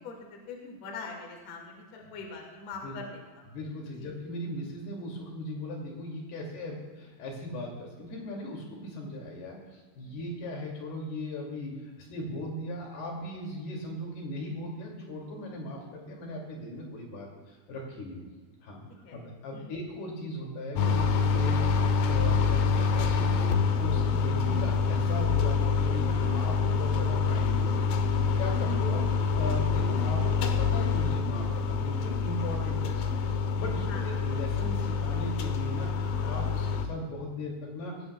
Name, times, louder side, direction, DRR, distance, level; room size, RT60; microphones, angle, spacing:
voice 1, 0.0-3.5 4.0-4.1 19.0-19.2 19.5-19.7 28.6-29.0 33.9-34.2 36.2-36.8, left 3 dB, 45° left, 0 dB, 2.5 m, -43 dB
voice 2, 3.5-11.7 12.0-18.2 18.6-18.8 19.1-21.6 22.0-22.7 22.9-28.0 28.4-29.0 29.3-37.9, left 1 dB, 60° left, -1 dB, 4.5 m, -38 dB
sound 1, 20.8-36.9, left 5 dB, 85° left, 1.9 m, -26 dB
19.0 x 16.5 x 2.4 m, 1.4 s
omnidirectional pair, 5.3 m